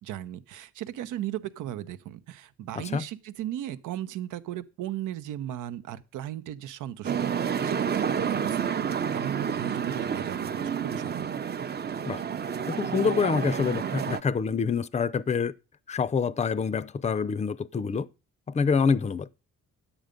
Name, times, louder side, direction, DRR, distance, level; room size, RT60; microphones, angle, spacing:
voice 1, 0.0-11.3, right 12 dB, 85° right, 0.9 m, -37 dB
sound 1, 7.0-14.2, right 7 dB, 35° right, 0.7 m, -29 dB
voice 2, 12.7-15.5 15.9-18.1 18.5-19.3, left 5 dB, 25° left, 0.5 m, -26 dB
10.0 x 8.1 x 5.2 m
cardioid pair, 90°, 30 cm